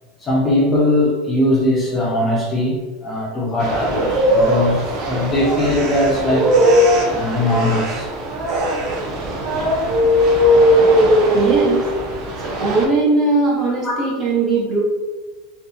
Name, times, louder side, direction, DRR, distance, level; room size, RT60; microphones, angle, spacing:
voice 1, 0.2-6.6 7.1-8.1 13.8-14.1, left 1 dB, 25° left, -3 dB, 0.6 m, -20 dB
sound 1, 3.6-12.8, equal, 50° right, 0.5 m, -18 dB
voice 2, 11.3-11.8 12.4-14.8, right 3 dB, 30° right, -4 dB, 0.8 m, -19 dB
2.6 x 2.4 x 2.4 m, 1.3 s
supercardioid pair, 145°, 0 cm